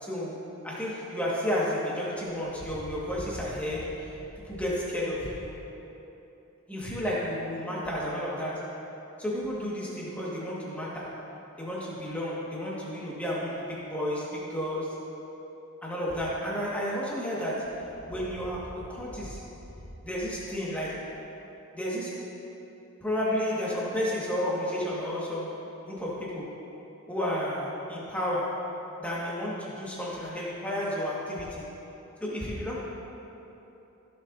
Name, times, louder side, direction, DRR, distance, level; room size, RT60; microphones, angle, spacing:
voice 1, 0.0-4.1 4.4-5.6 6.7-8.7 9.2-11.2 11.6-15.1 15.8-19.4 20.0-21.1 21.7-22.3 23.0-26.6 27.1-31.6 32.2-32.8, equal, 5° left, -6 dB, 1.6 m, -32 dB
16.0 x 7.0 x 2.6 m, 3.0 s
head